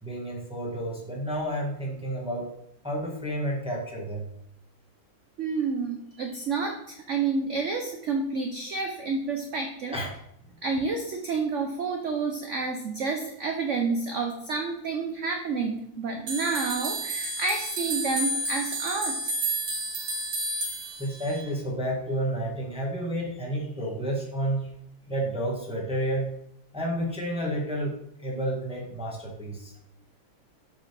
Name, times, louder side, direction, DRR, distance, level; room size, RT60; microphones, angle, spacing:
voice 1, 0.0-2.5 2.8-4.3 9.9-10.1 21.0-24.7 25.1-26.3 26.7-29.7, right 1 dB, 5° right, -2 dB, 1.1 m, -30 dB
voice 2, 5.4-10.0 10.6-19.2, right 4 dB, 70° right, 3 dB, 0.7 m, -29 dB
sound 1, 16.3-21.5, right 2 dB, 45° right, 1.1 m, -31 dB
7.6 x 4.9 x 3.3 m, 0.74 s
omnidirectional pair, 2.1 m